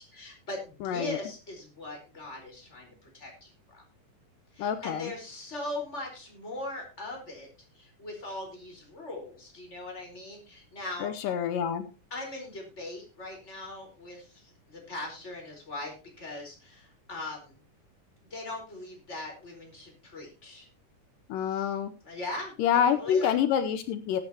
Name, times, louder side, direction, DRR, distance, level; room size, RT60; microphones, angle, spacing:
voice 1, 0.1-3.8 4.5-7.5 7.7-11.1 12.1-17.6 18.3-20.7 21.4-21.7 22.0-23.3, left 2 dB, 20° left, 1 dB, 4.6 m, -40 dB
voice 2, 0.8-1.2 4.6-5.1 11.0-11.9 21.3-21.9 22.6-24.2, left 8 dB, 80° left, 10 dB, 2.4 m, -27 dB
19.5 x 8.9 x 2.9 m, 0.33 s
omnidirectional pair, 3.9 m